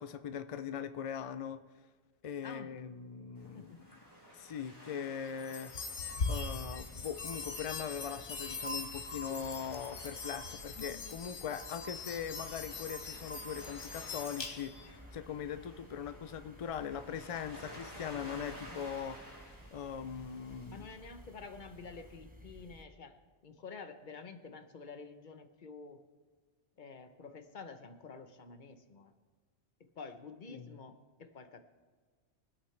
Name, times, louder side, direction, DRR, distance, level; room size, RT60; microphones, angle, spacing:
voice 1, 0.0-1.6 2.2-3.7 4.3-5.7 6.3-19.5 19.7-20.9 30.5-30.7, left 8 dB, 65° left, 10 dB, 0.3 m, -41 dB
voice 2, 2.4-2.7 3.5-3.8 20.7-26.0 26.8-29.1 30.0-31.6, left 4 dB, 45° left, 8 dB, 0.9 m, -49 dB
Waves surf, 3.3-22.1, equal, 20° left, 4.1 m, -54 dB
sound 1, 5.4-14.9, left 3 dB, 80° left, 1.4 m, -41 dB
sound 2, 6.0-22.9, right 1 dB, 10° right, 0.6 m, -56 dB
23.5 x 8.6 x 3.3 m, 1.5 s
omnidirectional pair, 1.2 m